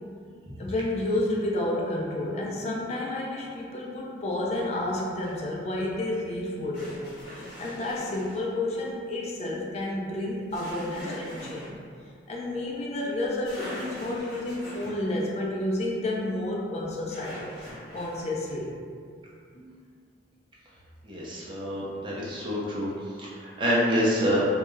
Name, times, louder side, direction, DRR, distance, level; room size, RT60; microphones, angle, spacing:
voice 1, 0.6-11.8 12.3-17.4 17.9-18.7 19.5-19.7, left 1 dB, 35° left, -3 dB, 0.3 m, -30 dB
sound 1, 5.2-5.4 6.7-8.4 10.5-11.7 13.1-13.2 13.4-15.0 17.1-18.2, equal, 65° left, 0.8 m, -41 dB
voice 2, 21.0-22.9 23.2-24.4, equal, 25° right, -6 dB, 0.5 m, -27 dB
2.2 x 2.1 x 3.0 m, 2.2 s
head